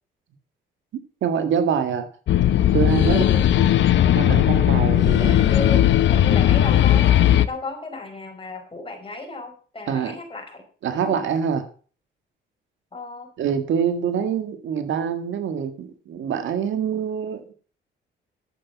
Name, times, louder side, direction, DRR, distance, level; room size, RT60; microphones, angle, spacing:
voice 1, 1.2-2.1 2.7-3.3 3.6-3.7 4.2-5.4 9.9-10.2 10.8-11.6 13.4-17.5, right 7 dB, 75° right, 9 dB, 1.7 m, -25 dB
sound 1, 2.3-7.5, left 11 dB, 70° left, 0.9 m, -17 dB
voice 2, 3.1-3.4 5.2-11.1 12.9-13.3, left 2 dB, 25° left, 3 dB, 5.1 m, -34 dB
11.5 x 8.2 x 5.8 m, 0.41 s
cardioid pair, 90°, 20 cm